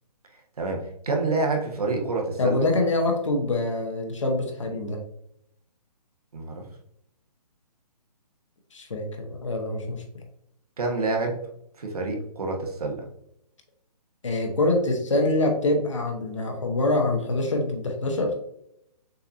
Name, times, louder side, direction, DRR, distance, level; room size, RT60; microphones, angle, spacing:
voice 1, 0.6-2.7 6.3-6.6 10.8-11.4 11.8-13.1, right 3 dB, 65° right, 1 dB, 1.3 m, -27 dB
voice 2, 2.4-5.0 8.7-10.0 14.2-18.3, left 2 dB, 45° left, 3 dB, 1.1 m, -25 dB
6.6 x 2.9 x 2.6 m, 0.75 s
hypercardioid pair, 180°, 21 cm